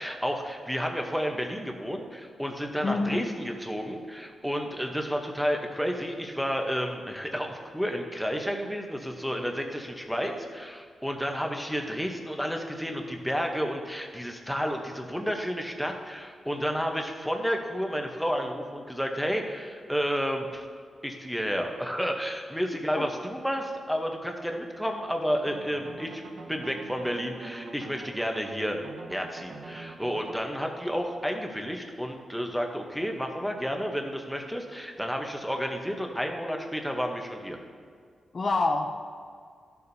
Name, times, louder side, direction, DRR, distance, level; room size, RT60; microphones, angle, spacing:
voice 1, 0.0-20.6 21.0-26.2 26.5-28.8 29.1-37.6, equal, ahead, 2 dB, 0.8 m, -31 dB
voice 2, 2.8-3.3 23.0-23.1 38.3-39.0, left 3 dB, 35° left, 4 dB, 0.4 m, -26 dB
sound 1, 25.3-30.3, right 3 dB, 60° right, 0.7 m, -44 dB
13.5 x 6.9 x 2.7 m, 2.1 s
wide cardioid pair, 160°, 0 cm